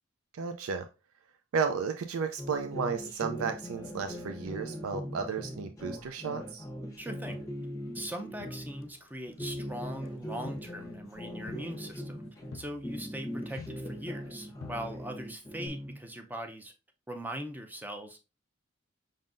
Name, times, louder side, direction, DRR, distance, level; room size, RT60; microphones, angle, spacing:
voice 1, 0.3-0.9 1.5-6.6, right 5 dB, 90° right, 0.4 m, -33 dB
sound 1, 2.4-8.9 9.3-12.6 12.8-16.0, equal, 15° left, 1.0 m, -40 dB
voice 2, 7.0-7.4 7.9-12.2 12.5-16.7 17.1-18.2, right 1 dB, 10° right, 0.5 m, -40 dB
Crowd, 7.3-9.1 9.4-14.3 14.6-15.3 15.7-15.8, left 6 dB, 60° left, 0.3 m, -52 dB
5.3 x 3.8 x 2.5 m
head